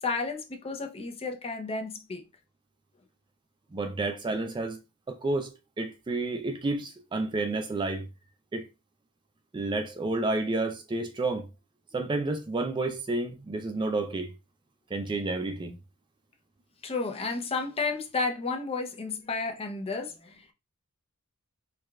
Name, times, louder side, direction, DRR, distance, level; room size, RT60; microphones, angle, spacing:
voice 1, 0.0-2.2 16.8-20.5, left 4 dB, 25° left, 0.6 m, -32 dB
voice 2, 3.7-4.8 5.1-8.1 8.5-8.7 9.5-11.5 11.9-14.3 14.9-15.7, right 2 dB, 20° right, 0.3 m, -30 dB
4.7 x 2.4 x 2.3 m
head